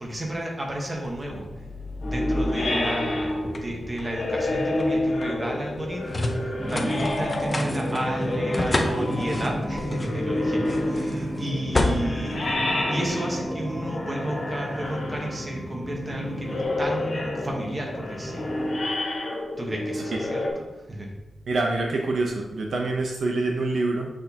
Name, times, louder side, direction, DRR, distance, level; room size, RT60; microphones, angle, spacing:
voice 1, 0.0-1.5 2.0-18.5 19.6-21.1, right 1 dB, 20° right, -1 dB, 1.2 m, -32 dB
sound 1, 1.0-13.4, left 2 dB, 25° left, 0.7 m, -32 dB
sound 2, 2.0-20.5, left 1 dB, 55° left, 1.7 m, -29 dB
sound 3, 6.6-18.8, equal, 5° right, 0.8 m, -33 dB
voice 2, 21.5-24.1, right 2 dB, 65° right, 1 dB, 0.7 m, -26 dB
6.5 x 6.0 x 2.9 m, 1.0 s
wide cardioid pair, 155°, 0 cm